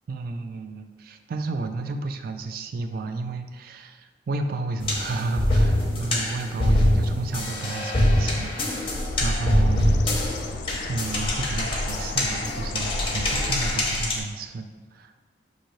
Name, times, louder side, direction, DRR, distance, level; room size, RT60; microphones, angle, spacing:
voice 1, 0.1-10.0 10.9-14.7 14.9-15.1, right 3 dB, 55° right, 7 dB, 0.3 m, -32 dB
sound 1, 4.8-14.2, left 1 dB, 30° left, 0.6 m, -24 dB
Bird, 8.7-14.3, left 2 dB, 65° left, 0.3 m, -32 dB
6.2 x 2.7 x 3.0 m, 1.4 s
head